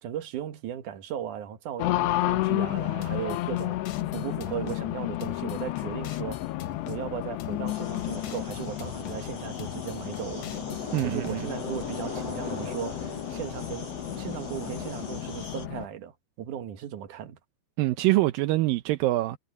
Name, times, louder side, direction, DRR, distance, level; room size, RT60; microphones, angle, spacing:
voice 1, 0.0-3.8 4.1-6.4 6.9-10.5 11.0-17.4, right 10 dB, 60° right, 2.6 m, -37 dB
Race car auto racing, 1.8-15.9, left 16 dB, 85° left, 3.0 m, -32 dB
sound 1, 3.0-4.8 5.2-7.0 7.4-9.2 9.6-11.4, left 8 dB, 70° left, 1.6 m, -44 dB
sound 2, 7.7-15.7, left 3 dB, 35° left, 6.8 m, -39 dB
voice 2, 10.9-11.4 17.8-19.4, right 17 dB, 75° right, 2.2 m, -24 dB
omnidirectional pair, 4.7 m